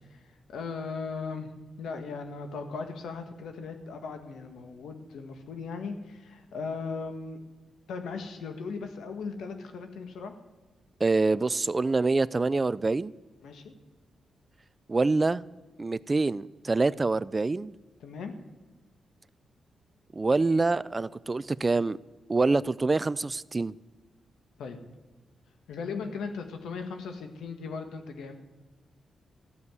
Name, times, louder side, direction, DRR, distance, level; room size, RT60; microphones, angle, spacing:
voice 1, 0.1-1.5 1.8-7.4 7.9-10.3 13.4-13.7 18.0-18.3 24.6-24.8 25.7-28.3, left 4 dB, 90° left, 1.8 m, -38 dB
voice 2, 11.0-13.1 14.9-15.4 15.8-17.7 20.1-22.0 22.3-23.7, right 3 dB, 25° right, 0.3 m, -26 dB
13.5 x 7.1 x 9.5 m
cardioid pair, 105°, 0 cm